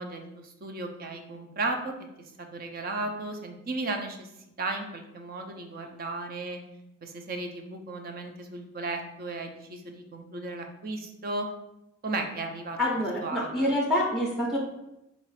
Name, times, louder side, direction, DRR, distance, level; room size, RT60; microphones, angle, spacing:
voice 1, 0.0-2.0 2.4-4.3 4.6-6.6 7.0-11.5 12.0-12.8 13.2-13.7, right 2 dB, 45° right, 5 dB, 0.6 m, -35 dB
voice 2, 12.8-14.6, left 1 dB, ahead, -2 dB, 0.6 m, -26 dB
4.1 x 2.5 x 4.7 m, 0.90 s
head